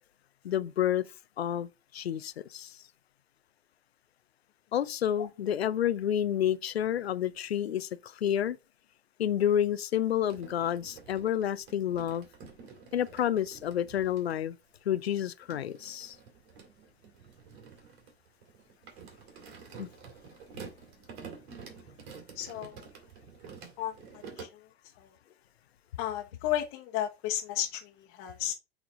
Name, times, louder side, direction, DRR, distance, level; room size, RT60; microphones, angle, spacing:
voice 1, 0.4-1.1 1.4-1.7 1.9-2.8 4.7-8.6 9.2-12.3 12.9-14.6 14.9-16.2 19.8-19.9, left 10 dB, 80° left, 0.6 m, -29 dB
sound 1, 10.2-14.4 15.1-24.4, right 5 dB, 55° right, 2.6 m, -49 dB
voice 2, 22.4-22.8 23.8-23.9 24.4-24.5 25.0-25.1 26.0-28.5, left 12 dB, 45° left, 1.2 m, -33 dB
7.9 x 3.7 x 3.7 m
hypercardioid pair, 90°, 31 cm